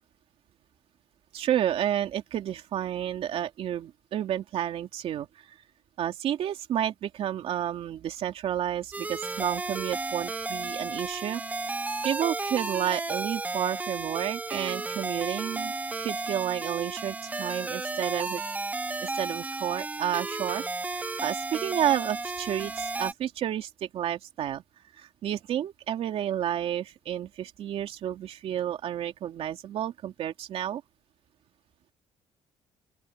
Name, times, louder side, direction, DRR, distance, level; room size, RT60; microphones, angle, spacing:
voice 1, 1.3-5.5 6.0-11.4 12.0-15.7 16.0-18.4 19.0-24.6 25.0-30.8, right 10 dB, 60° right, 2.7 m, -31 dB
sound 1, 8.9-23.1, right 3 dB, 15° right, 0.5 m, -33 dB
open air
cardioid pair, 140°, 11 cm